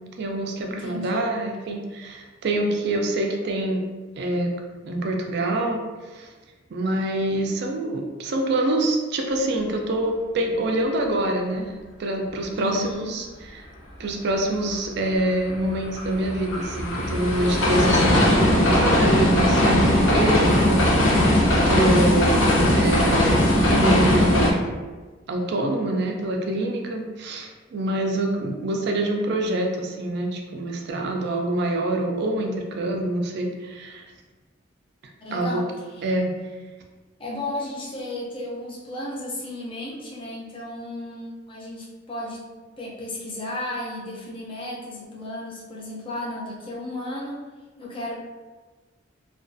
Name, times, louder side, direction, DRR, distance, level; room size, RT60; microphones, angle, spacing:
voice 1, 0.2-3.8 4.2-4.5 4.8-5.8 6.1-6.3 6.7-11.7 12.0-13.3 13.6-13.7 14.0-22.4 22.7-24.6 25.3-34.0 35.3-35.6 36.0-36.3, right 1 dB, 60° right, 2 dB, 0.4 m, -26 dB
voice 2, 0.7-1.3 12.6-13.1 35.2-35.7 36.0-36.1 37.2-42.5 42.8-47.4 47.8-48.1, left 1 dB, 30° left, -4 dB, 0.5 m, -34 dB
sound 1, 15.2-24.5, left 1 dB, 75° left, 0.5 m, -19 dB
2.3 x 2.3 x 2.5 m, 1.3 s
head